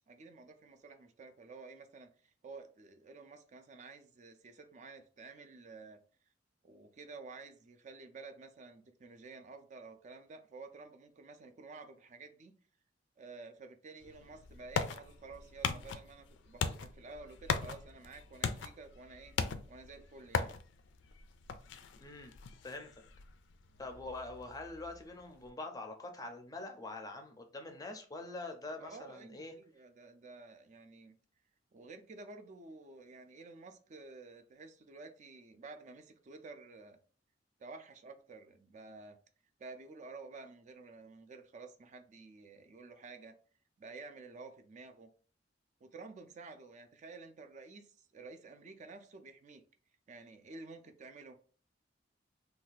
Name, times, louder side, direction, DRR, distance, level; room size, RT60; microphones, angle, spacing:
voice 1, 0.1-6.0 6.6-12.5 13.2-19.4 19.7-20.6 28.8-31.2 31.7-37.0 37.6-39.2 39.6-43.3 43.8-45.1 45.8-49.6 50.1-51.4, right 3 dB, 40° right, 0.4 m, -51 dB
sound 1, 14.0-25.5, left 5 dB, 80° left, 0.4 m, -40 dB
voice 2, 22.0-22.3 22.6-22.9 23.8-29.5, left 2 dB, 20° left, 0.4 m, -44 dB
2.6 x 2.3 x 3.8 m
head